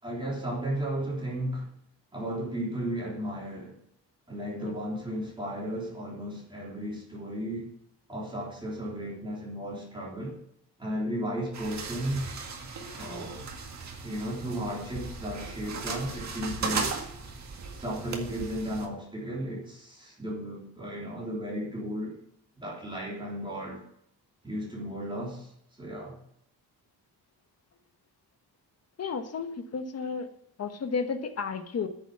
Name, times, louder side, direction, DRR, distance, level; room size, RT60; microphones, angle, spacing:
voice 1, 0.0-1.7 2.1-3.8 4.3-7.7 8.1-10.4 10.8-12.3 12.9-13.5 14.0-17.0 17.7-22.2 22.6-23.8 24.4-26.2, equal, 10° right, -5 dB, 3.5 m, -34 dB
sound 1, 11.5-18.9, right 4 dB, 45° right, 1.8 m, -37 dB
voice 2, 29.0-30.3 30.6-31.9, left 5 dB, 40° left, 7 dB, 1.2 m, -32 dB
9.8 x 7.0 x 8.1 m, 0.72 s
wide cardioid pair, 165°, 38 cm